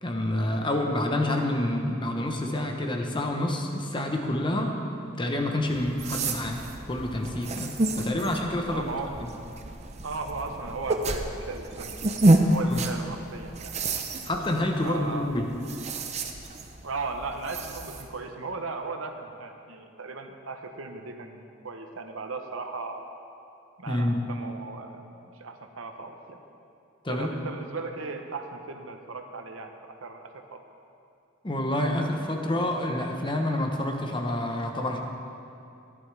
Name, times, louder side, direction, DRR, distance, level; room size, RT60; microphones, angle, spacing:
voice 1, 0.0-8.9 12.6-12.8 14.2-15.5 23.9-24.2 27.0-27.3 31.4-35.0, left 1 dB, 25° left, 2 dB, 0.9 m, -28 dB
sound 1, 5.7-18.1, right 1 dB, 35° right, 0.7 m, -29 dB
voice 2, 8.7-9.2 10.0-12.1 12.5-13.8 14.8-15.3 16.8-23.0 23.8-25.1 25.3-26.4 27.1-30.6, right 3 dB, 80° right, 5 dB, 1.0 m, -37 dB
15.0 x 11.0 x 3.4 m, 2.6 s
head